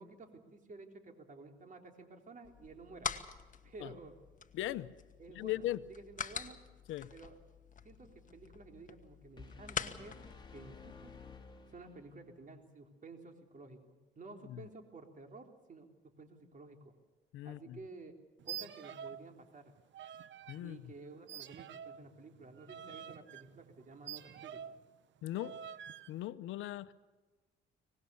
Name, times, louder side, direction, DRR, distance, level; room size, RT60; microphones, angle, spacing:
voice 1, 0.0-3.1 3.6-4.2 5.2-5.6 5.9-6.6 7.1-7.4 7.8-10.2 10.5-11.1 11.7-16.9 17.4-18.1 18.4-19.7 20.6-24.6, right 3 dB, 40° right, 4 dB, 3.7 m, -53 dB
sound 1, 2.4-11.4, left 7 dB, 40° left, 1.4 m, -45 dB
voice 2, 4.5-4.9 5.3-5.8 6.9-7.1 14.4-14.6 17.3-17.8 20.5-20.9 25.2-25.6 26.1-26.9, left 14 dB, 90° left, 14 dB, 0.8 m, -39 dB
sound 2, 9.4-12.3, left 4 dB, 25° left, 3.4 m, -54 dB
sound 3, 18.4-19.3 19.5-20.6 21.3-24.9 25.4-26.1, right 9 dB, 70° right, 0.9 m, -47 dB
24.5 x 19.5 x 7.0 m, 1.3 s
cardioid pair, 90°, 20 cm